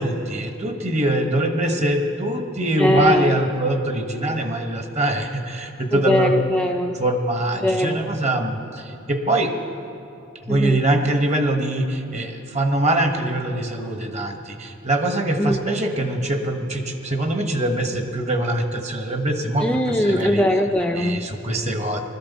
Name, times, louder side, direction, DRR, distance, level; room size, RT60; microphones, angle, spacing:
voice 1, 0.0-6.3 7.0-9.5 10.4-20.4 20.9-22.0, right 1 dB, 35° right, 5 dB, 1.2 m, -23 dB
voice 2, 2.8-3.4 5.9-7.0 7.6-8.0 10.5-10.8 15.4-15.6 19.6-21.3, left 1 dB, 5° left, 4 dB, 0.4 m, -21 dB
20.5 x 13.5 x 4.1 m, 2.6 s
head